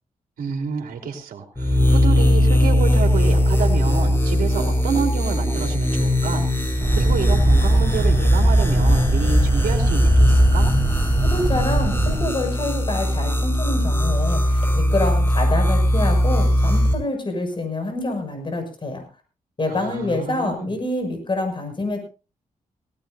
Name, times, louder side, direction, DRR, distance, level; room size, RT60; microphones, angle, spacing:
voice 1, 0.4-10.7 19.7-20.7, right 6 dB, 85° right, 2 dB, 3.0 m, -29 dB
sound 1, 1.6-16.9, left 1 dB, 15° left, 6.4 m, -19 dB
sound 2, 6.8-12.2, right 2 dB, 25° right, 5.0 m, -22 dB
voice 2, 11.2-19.0 19.6-22.0, left 2 dB, 35° left, 4 dB, 6.6 m, -26 dB
19.5 x 17.5 x 2.7 m, 0.33 s
cardioid pair, 75°, 14 cm